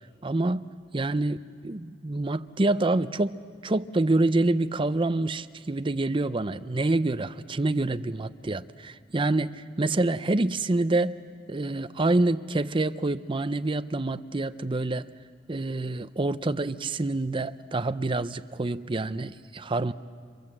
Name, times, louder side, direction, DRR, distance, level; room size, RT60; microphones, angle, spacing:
voice 1, 0.2-0.7 0.9-3.4 3.6-11.2 11.5-15.1 15.5-19.9, right 2 dB, 30° right, 0.6 m, -27 dB
29.0 x 26.5 x 7.7 m
head